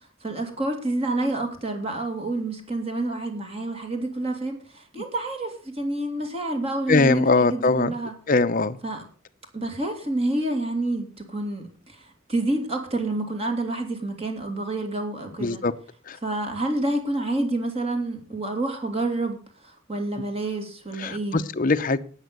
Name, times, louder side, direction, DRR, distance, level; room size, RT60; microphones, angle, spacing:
voice 1, 0.0-8.1 8.8-9.0 9.5-15.6 16.2-21.4, right 2 dB, 30° right, 5 dB, 2.6 m, -28 dB
voice 2, 6.9-7.9 8.3-8.8 15.4-15.7 16.1-16.2 21.0-22.0, left 3 dB, 40° left, 10 dB, 0.8 m, -21 dB
12.5 x 9.1 x 6.8 m, 0.41 s
head